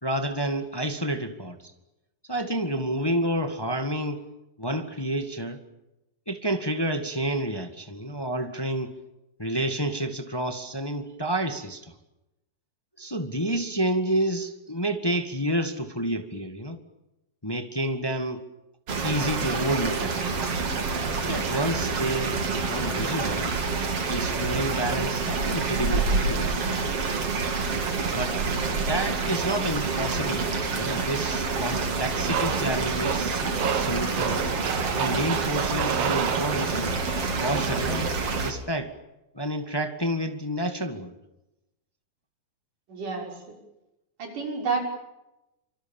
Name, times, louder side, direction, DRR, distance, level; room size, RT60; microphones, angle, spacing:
voice 1, 0.0-1.6 2.3-4.2 4.6-5.6 6.3-9.0 9.4-11.9 13.0-16.8 17.4-18.4 19.0-20.5 21.3-23.5 24.1-26.5 28.1-28.4 28.8-34.5 35.0-36.9 37.4-38.9 39.3-41.1, right 1 dB, 15° left, 7 dB, 0.9 m, -29 dB
sound 1, 18.9-38.5, right 4 dB, 45° right, 3.6 m, -27 dB
sound 2, 32.2-37.0, right 8 dB, 80° right, 3.6 m, -31 dB
voice 2, 42.9-43.6 44.2-44.8, right 4 dB, 60° right, 2 dB, 7.6 m, -30 dB
27.5 x 26.0 x 7.3 m, 0.93 s
omnidirectional pair, 4.1 m